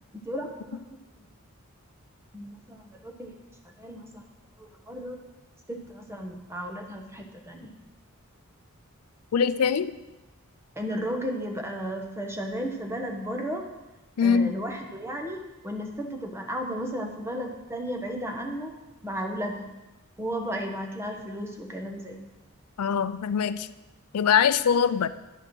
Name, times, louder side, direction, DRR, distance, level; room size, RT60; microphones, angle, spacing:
voice 1, 0.1-1.0 2.3-3.3 3.6-4.2 4.6-5.2 5.7-7.7 10.8-13.7 14.2-18.7 19.0-19.7 20.2-22.2, equal, 10° right, 2 dB, 1.1 m, -34 dB
voice 2, 9.3-9.9 14.2-14.5 22.8-23.7 24.1-25.1, left 7 dB, 85° left, 14 dB, 0.4 m, -22 dB
9.8 x 6.8 x 6.2 m, 1.0 s
head